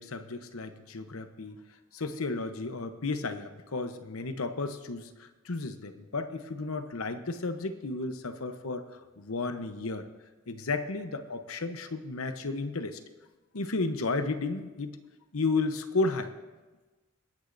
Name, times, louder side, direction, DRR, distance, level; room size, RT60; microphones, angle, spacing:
voice 1, 0.0-1.6 1.9-10.1 10.5-13.0 13.5-15.0 15.3-16.3, left 3 dB, 80° left, 9 dB, 0.9 m, -33 dB
26.5 x 9.9 x 2.6 m, 1.2 s
head